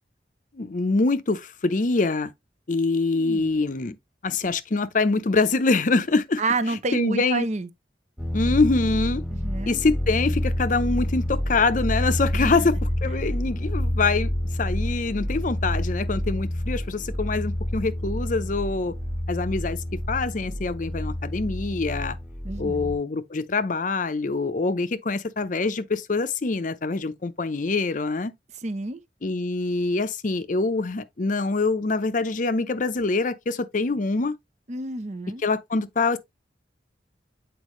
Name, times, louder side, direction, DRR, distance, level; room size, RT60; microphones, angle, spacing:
voice 1, 0.5-2.3 2.7-4.0 4.2-6.4 6.7-7.5 8.3-9.2 9.7-14.3 14.6-18.9 19.3-22.2 22.6-28.3 29.2-34.4 35.4-36.2, left 3 dB, 45° left, 0.6 m, -25 dB
voice 2, 3.1-3.5 6.4-7.7 9.3-9.8 12.3-12.7 22.4-22.9 28.6-29.0 34.7-35.4, right 3 dB, 40° right, 0.7 m, -29 dB
sound 1, 8.2-23.0, left 1 dB, 5° right, 1.5 m, -28 dB
8.1 x 4.6 x 3.1 m
head